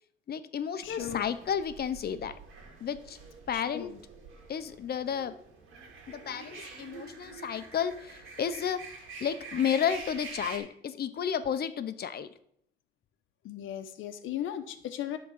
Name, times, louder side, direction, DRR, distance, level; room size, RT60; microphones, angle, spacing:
voice 1, 0.3-2.3 2.8-3.2 3.5-3.9 4.5-5.3 6.1-8.9 9.2-12.3, left 8 dB, 55° left, 12 dB, 0.8 m, -32 dB
voice 2, 0.8-1.3 3.5-4.0 13.4-15.2, left 11 dB, 85° left, 7 dB, 0.9 m, -37 dB
sound 1, 0.8-10.6, right 4 dB, 85° right, 2.0 m, -47 dB
11.0 x 3.9 x 7.1 m, 0.69 s
cardioid pair, 90°, 20 cm